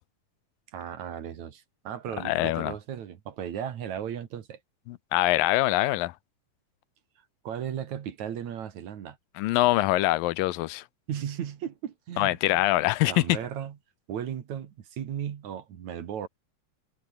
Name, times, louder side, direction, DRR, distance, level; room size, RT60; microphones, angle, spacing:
voice 1, 0.7-4.6 7.4-9.2 11.1-12.4 13.1-13.8 14.1-16.3, right 9 dB, 60° right, 2.9 m, -36 dB
voice 2, 2.2-2.7 4.9-6.1 9.4-10.8 12.2-13.4, left 17 dB, 90° left, 2.5 m, -24 dB
omnidirectional pair, 4.0 m